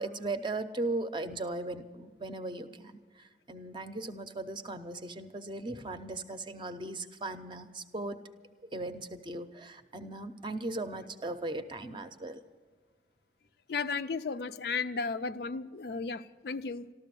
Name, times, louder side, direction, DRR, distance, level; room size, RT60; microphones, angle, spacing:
voice 1, 0.0-8.2 8.7-12.4, right 2 dB, 25° right, 0.6 m, -38 dB
voice 2, 13.7-16.9, left 4 dB, 60° left, 0.4 m, -34 dB
13.5 x 13.0 x 6.8 m
head